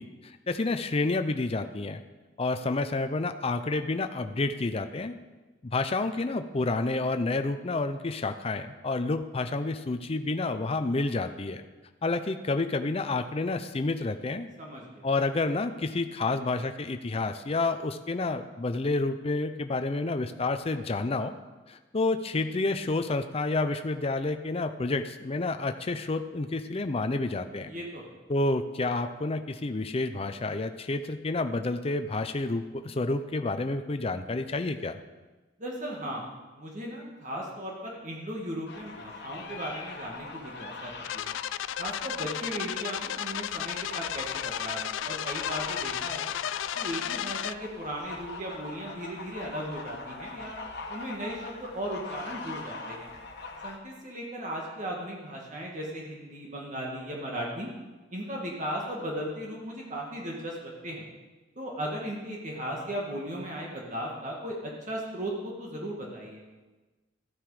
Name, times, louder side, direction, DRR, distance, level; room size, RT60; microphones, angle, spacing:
voice 1, 0.0-2.0 2.4-5.2 5.6-11.6 12.0-14.5 15.0-21.3 21.7-27.7 28.3-35.0, left 3 dB, 30° left, 8 dB, 0.5 m, -29 dB
voice 2, 14.6-15.1 27.7-28.0 35.6-41.4 41.8-46.3 46.8-50.6 50.9-53.1 53.6-57.7 58.1-61.1 61.6-66.4, equal, 40° right, -2 dB, 1.8 m, -37 dB
sound 1, 38.7-53.8, left 3 dB, 60° left, 1.3 m, -42 dB
sound 2, 41.0-47.5, left 11 dB, 80° left, 0.3 m, -33 dB
13.5 x 9.2 x 4.9 m, 1.2 s
head